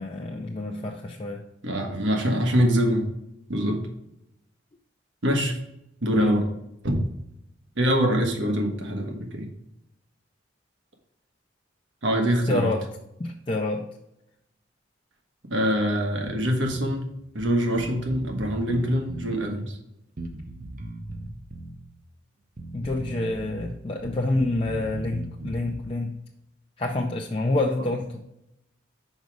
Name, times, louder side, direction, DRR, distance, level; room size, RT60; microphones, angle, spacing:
voice 1, 0.0-1.4 6.1-6.4 12.5-12.9 13.2-13.9 22.7-26.2 26.8-28.2, left 2 dB, 30° left, 1 dB, 0.5 m, -27 dB
voice 2, 1.6-3.1 3.5-3.8 5.2-5.6 6.0-6.5 6.8-7.0 7.8-9.5 12.0-12.7 15.5-17.1 17.3-19.8, equal, 80° right, 3 dB, 1.3 m, -24 dB
Bass guitar, 16.2-16.9 17.4-17.5 17.8-19.4 20.2-21.8 22.6-23.7 24.0-25.8, right 2 dB, 45° right, 0.7 m, -38 dB
5.3 x 5.1 x 4.7 m, 0.84 s
head